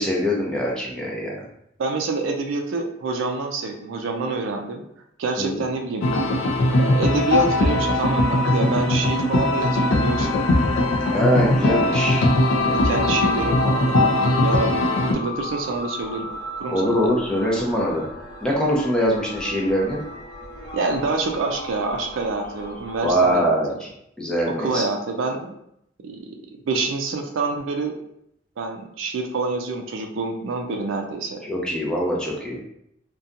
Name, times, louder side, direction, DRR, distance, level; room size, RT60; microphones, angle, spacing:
voice 1, 0.0-1.4 5.4-5.6 11.1-12.2 16.7-18.1 18.4-20.0 23.0-23.7 24.2-24.8 31.4-32.6, equal, 5° left, -3 dB, 0.5 m, -23 dB
voice 2, 1.8-4.8 5.2-6.0 6.7-10.4 12.6-14.7 15.1-16.3 16.6-16.8 20.7-23.5 24.4-25.5 26.0-27.9 28.6-31.4, right 3 dB, 80° right, 3 dB, 0.4 m, -27 dB
sound 1, 6.0-15.1, left 1 dB, 75° left, 0.4 m, -20 dB
sound 2, 9.9-23.3, equal, 20° left, 1.0 m, -36 dB
2.7 x 2.2 x 2.4 m, 0.75 s
head